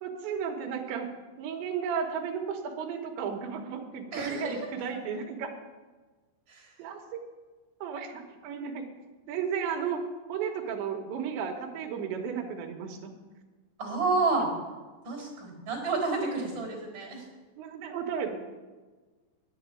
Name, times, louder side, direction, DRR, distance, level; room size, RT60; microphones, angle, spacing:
voice 1, 0.0-1.1 1.4-5.6 6.8-7.2 7.8-8.8 9.3-13.1 17.6-18.4, right 6 dB, 75° right, 3 dB, 3.1 m, -34 dB
voice 2, 4.1-4.6 6.5-6.9 13.8-14.5 15.0-17.3, right 3 dB, 25° right, -1 dB, 4.1 m, -30 dB
9.9 x 8.3 x 8.4 m, 1.3 s
omnidirectional pair, 5.8 m